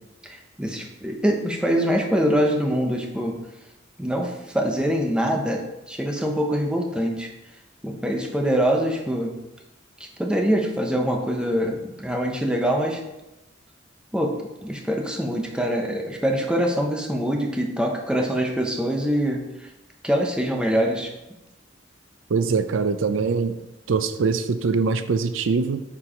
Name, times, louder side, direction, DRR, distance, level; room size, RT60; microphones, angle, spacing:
voice 1, 0.2-3.3 4.0-5.6 5.9-7.3 7.8-9.3 10.2-13.0 14.1-14.3 14.6-19.4 20.0-21.1, equal, 5° right, 1 dB, 0.9 m, -24 dB
voice 2, 22.3-23.6 23.9-25.8, right 4 dB, 80° right, 11 dB, 0.5 m, -23 dB
7.2 x 4.6 x 5.0 m, 0.96 s
head